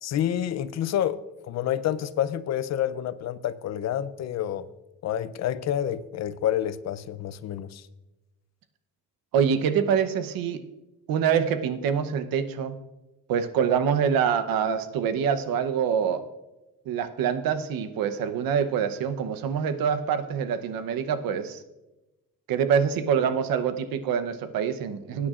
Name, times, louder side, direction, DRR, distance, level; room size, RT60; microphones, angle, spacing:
voice 1, 0.0-1.2 1.5-4.7 5.0-7.8, left 10 dB, 50° left, 0.5 m, -28 dB
voice 2, 9.3-10.6 11.1-12.7 13.3-16.2 16.9-21.6 22.5-25.3, right 7 dB, 85° right, 0.9 m, -25 dB
19.5 x 9.5 x 2.5 m
cardioid pair, 150°, 34 cm